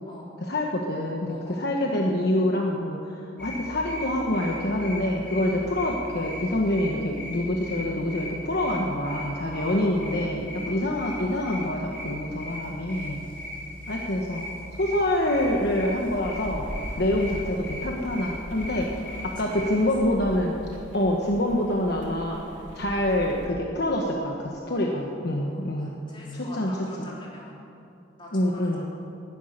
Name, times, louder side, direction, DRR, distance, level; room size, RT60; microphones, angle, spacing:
voice 1, 0.4-13.2 13.9-14.4 14.8-16.7 17.0-18.9 19.2-20.6 20.9-22.4 22.7-26.0 26.3-26.7 27.0-27.1 28.3-28.9, left 1 dB, 55° left, 0 dB, 1.2 m, -26 dB
voice 2, 1.3-1.7 5.5-5.6 9.4-10.3 10.7-11.0 12.5-12.7 13.3-13.5 19.0-20.4 22.7-22.9 24.6-27.5 28.2-28.9, left 1 dB, 25° left, -5 dB, 3.8 m, -46 dB
sound 1, 3.4-19.9, left 1 dB, 5° left, 4.1 m, -38 dB
sound 2, 15.1-23.5, equal, 80° right, 3.0 m, -41 dB
11.5 x 10.0 x 9.9 m, 2.7 s
head